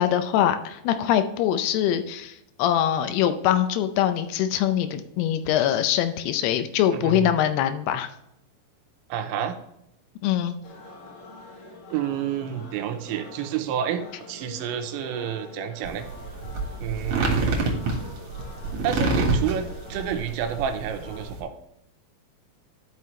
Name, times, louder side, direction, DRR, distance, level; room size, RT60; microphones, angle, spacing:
voice 1, 0.0-8.1 10.2-10.6, left 10 dB, 85° left, 9 dB, 2.3 m, -23 dB
voice 2, 6.9-7.3 9.1-9.6 11.9-16.1 16.8-17.8 18.8-21.5, right 9 dB, 80° right, 7 dB, 3.0 m, -29 dB
sound 1, 10.6-21.3, left 3 dB, 65° left, 4.1 m, -45 dB
sound 2, 15.8-21.4, right 3 dB, 55° right, 2.2 m, -27 dB
12.5 x 5.4 x 3.2 m, 0.80 s
omnidirectional pair, 5.3 m